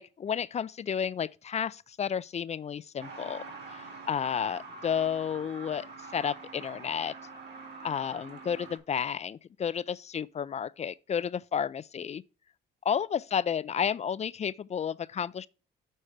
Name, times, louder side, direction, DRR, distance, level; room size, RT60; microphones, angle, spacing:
voice 1, 0.0-5.9 6.1-7.1 7.8-12.2 12.9-15.5, left 7 dB, 35° left, 0.4 m, -32 dB
Truck, 3.0-8.8, right 4 dB, 60° right, 2.2 m, -45 dB
6.5 x 4.4 x 4.8 m
cardioid pair, 90°, 20 cm